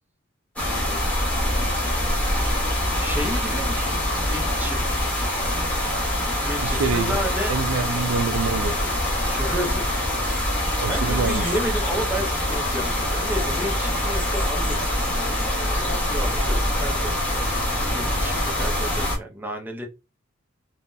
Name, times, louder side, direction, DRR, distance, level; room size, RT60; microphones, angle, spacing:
sound 1, 0.6-19.2, left 1 dB, 5° left, 0.9 m, -24 dB
voice 1, 0.7-1.0 3.0-5.0 6.4-7.5 9.2-9.9 10.9-17.2 17.9-19.9, equal, 10° right, 0.5 m, -32 dB
voice 2, 6.6-7.2 7.5-9.0 10.8-11.5, right 5 dB, 75° right, 0.4 m, -26 dB
3.6 x 2.0 x 2.5 m
head